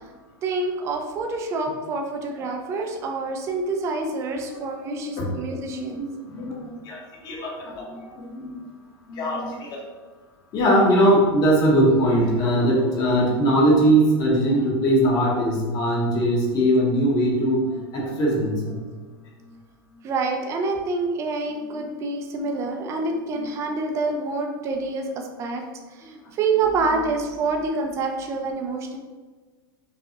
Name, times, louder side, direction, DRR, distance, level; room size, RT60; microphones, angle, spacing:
voice 1, 0.4-6.0 20.0-25.6 26.4-29.0, right 3 dB, 20° right, 3 dB, 0.4 m, -27 dB
voice 2, 5.6-8.6 9.1-9.8 10.5-18.8 23.3-23.5, right 1 dB, 30° left, -2 dB, 0.9 m, -21 dB
5.2 x 2.3 x 2.8 m, 1.3 s
supercardioid pair, 150°, 13 cm